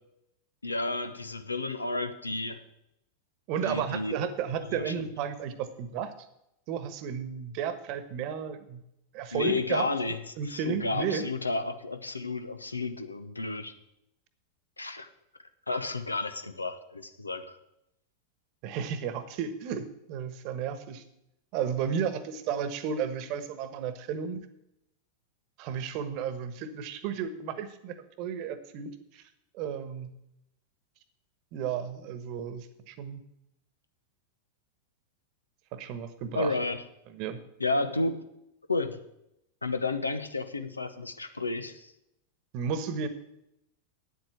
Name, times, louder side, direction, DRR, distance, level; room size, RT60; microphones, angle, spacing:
voice 1, 0.6-2.6 3.6-4.3 4.6-4.9 9.3-13.8 14.8-15.1 15.7-17.6 36.3-36.8 37.6-38.3 38.7-39.0 39.6-41.9, left 3 dB, 80° left, 10 dB, 0.9 m, -32 dB
voice 2, 3.5-6.1 6.7-8.8 9.1-9.9 10.4-11.2 18.6-21.0 21.5-24.4 25.6-29.2 29.5-30.1 31.5-33.2 35.7-36.5 37.1-37.4 42.5-43.1, right 7 dB, 45° right, 12 dB, 1.2 m, -33 dB
9.1 x 7.8 x 8.1 m, 0.84 s
figure-of-eight pair, 90°, 0 cm